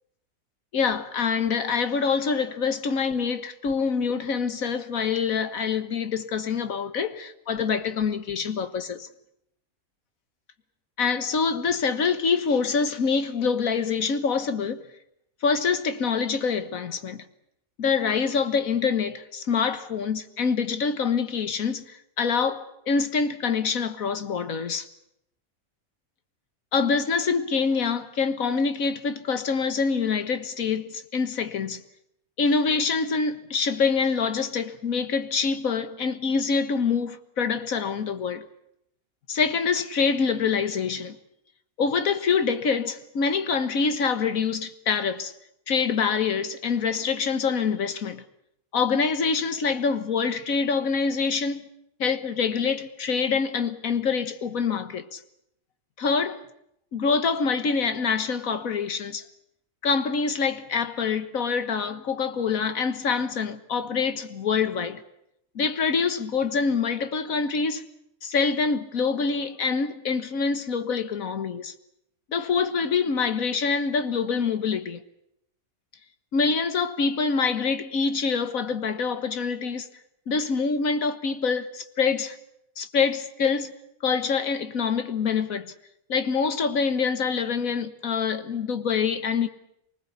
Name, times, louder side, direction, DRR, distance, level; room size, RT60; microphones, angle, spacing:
voice 1, 0.7-9.1 11.0-14.8 15.4-17.2 17.8-24.9 26.7-31.8 32.4-38.5 39.3-41.2 41.8-45.3 45.7-48.2 48.7-51.7 52.0-55.2 56.0-56.4 56.9-59.2 59.8-65.0 65.6-67.9 68.2-71.7 72.3-75.0 76.3-79.9 80.3-82.4 82.8-83.7 84.0-85.7 86.1-89.5, left 5 dB, 70° left, 1.8 m, -25 dB
25.0 x 20.0 x 8.3 m
omnidirectional pair, 1.5 m